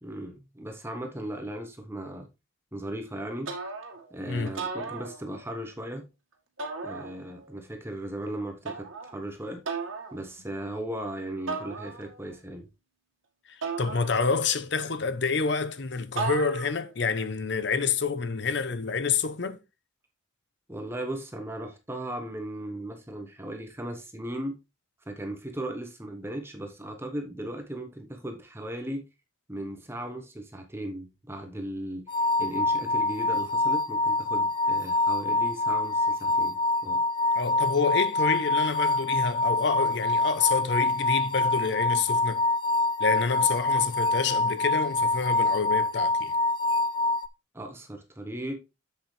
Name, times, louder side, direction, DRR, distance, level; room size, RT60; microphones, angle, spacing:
voice 1, 0.0-2.3 2.7-3.5 4.1-6.0 6.8-9.6 10.1-12.7 20.7-24.6 25.1-29.0 29.5-32.1 32.4-37.0 47.5-48.5, right 1 dB, 10° right, 1.0 m, -37 dB
sound 1, 3.5-4.1 4.5-5.6 6.6-7.5 8.7-9.2 9.7-10.2 11.5-12.3 13.6-14.6 16.2-16.9, right 4 dB, 85° right, 1.8 m, -36 dB
voice 2, 13.5-19.6 37.4-42.4 43.0-46.3, left 5 dB, 60° left, 0.7 m, -28 dB
sound 2, 32.1-47.3, left 2 dB, 25° left, 0.4 m, -25 dB
7.5 x 7.2 x 3.3 m
head